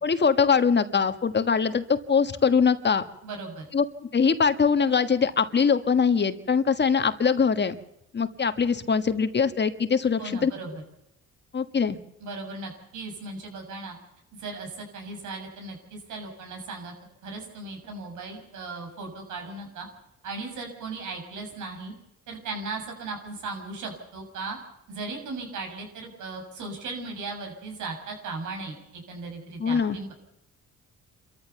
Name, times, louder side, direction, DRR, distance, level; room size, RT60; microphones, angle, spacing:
voice 1, 0.0-3.0 3.7-7.7 8.1-10.5 11.5-12.0 29.6-30.0, left 6 dB, 35° left, 10 dB, 1.5 m, -22 dB
voice 2, 3.2-3.6 10.2-10.8 12.2-14.0 14.4-16.9 17.2-19.9 20.2-21.9 22.3-24.6 24.9-30.1, right 3 dB, 80° right, 3 dB, 7.1 m, -37 dB
27.5 x 14.0 x 7.0 m, 0.84 s
cardioid pair, 90°, 30 cm